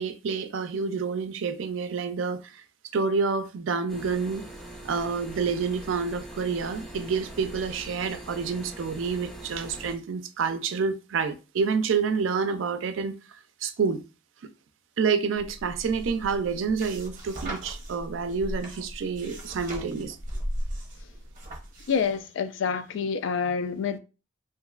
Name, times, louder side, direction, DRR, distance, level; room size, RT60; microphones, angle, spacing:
voice 1, 0.0-2.6 2.9-4.5 4.8-14.0 14.4-14.5 15.0-20.2, right 5 dB, 75° right, 0.4 m, -28 dB
sound 1, 3.9-10.0, right 1 dB, ahead, 0.4 m, -42 dB
sound 2, 15.4-22.2, equal, 45° right, 0.7 m, -37 dB
voice 2, 21.9-24.0, left 6 dB, 70° left, 0.3 m, -27 dB
2.9 x 2.5 x 2.3 m
head